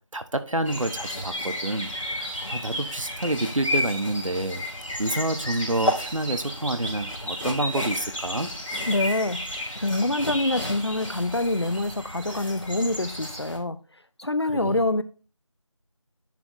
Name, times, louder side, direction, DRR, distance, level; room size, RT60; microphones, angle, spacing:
voice 1, 0.1-4.6 5.0-8.5 14.4-14.9, right 2 dB, 80° right, 1.1 m, -28 dB
sound 1, 0.6-13.6, left 1 dB, 75° left, 3.4 m, -32 dB
voice 2, 8.9-9.4 9.8-13.8 14.2-15.0, left 2 dB, 55° left, 0.6 m, -25 dB
10.5 x 3.7 x 4.0 m
figure-of-eight pair, 175°, 17 cm